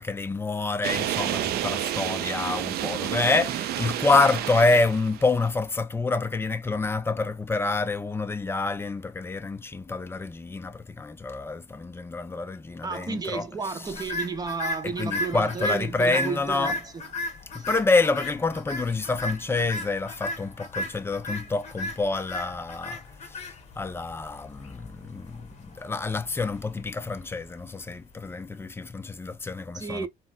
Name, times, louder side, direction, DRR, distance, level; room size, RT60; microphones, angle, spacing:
voice 1, 0.0-14.0 14.8-16.7 17.5-30.1, left 3 dB, 15° left, 0.4 m, -27 dB
sound 1, 0.8-5.5, right 12 dB, 70° right, 0.4 m, -30 dB
voice 2, 12.8-17.0 17.6-17.7 29.7-30.1, right 4 dB, 20° right, 0.7 m, -32 dB
sound 2, 13.9-28.2, left 1 dB, 40° left, 1.1 m, -36 dB
4.1 x 2.0 x 2.3 m
cardioid pair, 110°, 17 cm